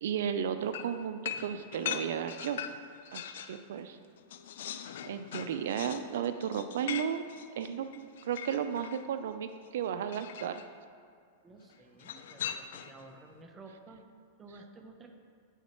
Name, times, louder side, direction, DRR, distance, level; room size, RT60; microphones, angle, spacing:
voice 1, 0.0-2.6 3.1-4.0 5.1-7.2 7.6-10.6, right 8 dB, 70° right, 10 dB, 0.4 m, -34 dB
sound 1, 0.7-3.6 4.0-9.0 10.1-10.7 12.0-13.1, left 9 dB, 70° left, 0.5 m, -41 dB
voice 2, 11.4-14.0 14.4-15.1, right 3 dB, 15° right, 3 dB, 0.7 m, -52 dB
9.1 x 7.1 x 4.3 m, 2.2 s
supercardioid pair, 160°, 0 cm